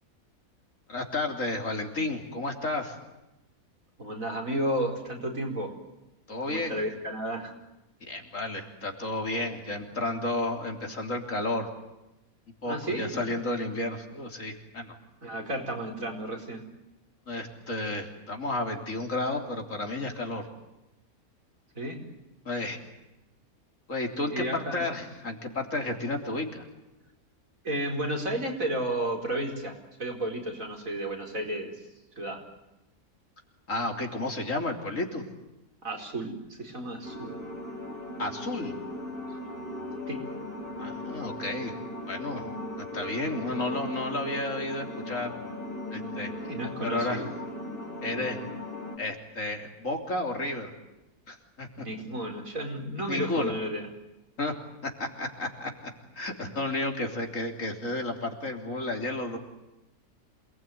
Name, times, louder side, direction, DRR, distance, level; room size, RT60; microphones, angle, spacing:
voice 1, 0.9-3.0 6.3-6.8 8.0-11.7 12.6-15.0 17.3-20.5 22.5-22.8 23.9-26.7 33.7-35.2 38.2-38.7 40.8-41.7 42.1-45.3 45.9-46.3 46.8-47.3 48.0-48.4 49.0-50.7 51.3-51.9 53.1-53.5 54.4-54.5 54.8-59.4, left 2 dB, 60° left, 3 dB, 3.8 m, -32 dB
voice 2, 4.0-5.7 6.5-7.5 12.6-13.2 15.2-16.6 21.7-22.0 24.3-24.8 27.6-31.7 32.2-32.4 35.8-37.4 39.3-39.4 40.1-40.2 46.4-47.3 51.8-53.9, right 1 dB, 65° right, 3 dB, 5.1 m, -32 dB
sound 1, 37.0-49.0, left 1 dB, 40° left, 4.6 m, -38 dB
27.5 x 20.0 x 9.3 m, 0.96 s
omnidirectional pair, 1.5 m